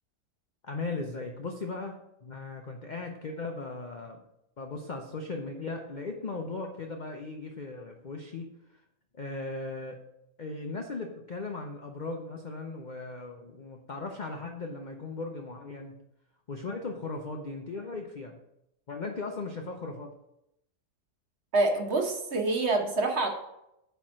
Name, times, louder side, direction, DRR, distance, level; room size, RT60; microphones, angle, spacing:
voice 1, 0.6-4.2 4.6-8.5 9.1-10.0 10.4-16.0 16.5-18.4 18.9-20.1, left 3 dB, 70° left, 3 dB, 0.4 m, -37 dB
voice 2, 21.5-23.3, right 2 dB, 45° right, 3 dB, 1.1 m, -26 dB
8.6 x 3.5 x 6.2 m, 0.84 s
omnidirectional pair, 1.8 m